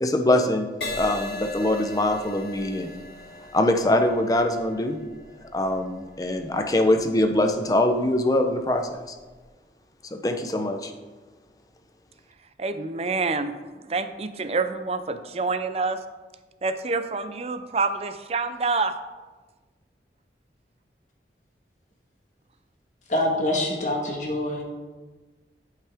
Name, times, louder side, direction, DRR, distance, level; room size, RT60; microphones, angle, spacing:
voice 1, 0.0-3.0 3.5-5.0 5.5-9.1 10.1-10.9, left 1 dB, 20° left, 5 dB, 0.6 m, -23 dB
Crash cymbal, 0.8-8.4 9.1-9.4, left 2 dB, 70° left, 2.2 m, -39 dB
voice 2, 12.6-16.0 16.6-18.9, right 4 dB, 35° right, 10 dB, 0.5 m, -27 dB
voice 3, 23.1-24.6, left 1 dB, 45° left, 0 dB, 1.5 m, -25 dB
12.0 x 5.7 x 3.5 m, 1.3 s
head